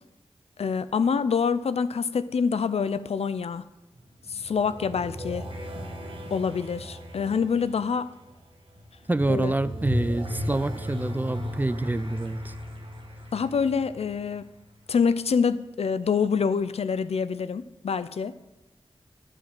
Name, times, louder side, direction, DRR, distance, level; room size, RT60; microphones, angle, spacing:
voice 1, 0.6-3.6 4.3-5.5 6.3-8.1 9.3-9.5 13.3-14.5 14.9-18.3, left 6 dB, 75° left, 13 dB, 0.4 m, -26 dB
sound 1, 3.9-14.7, equal, 55° right, 1.4 m, -36 dB
voice 2, 9.1-12.5, right 2 dB, 15° right, 14 dB, 0.3 m, -27 dB
9.6 x 4.6 x 7.4 m, 0.98 s
wide cardioid pair, 85°, 11 cm